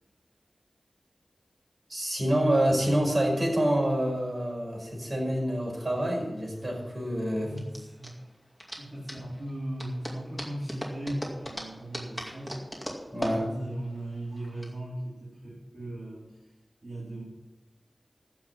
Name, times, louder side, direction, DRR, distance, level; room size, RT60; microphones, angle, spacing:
voice 1, 1.9-7.5 13.1-13.4, right 1 dB, 40° right, -2 dB, 5.5 m, -27 dB
sound 1, 5.8-14.7, equal, 5° right, 2.4 m, -40 dB
voice 2, 7.3-8.3 8.8-12.8 13.2-16.5 16.8-17.2, right 1 dB, 55° right, -8 dB, 4.1 m, -38 dB
14.5 x 6.1 x 8.5 m, 1.0 s
wide cardioid pair, 75°, 0 cm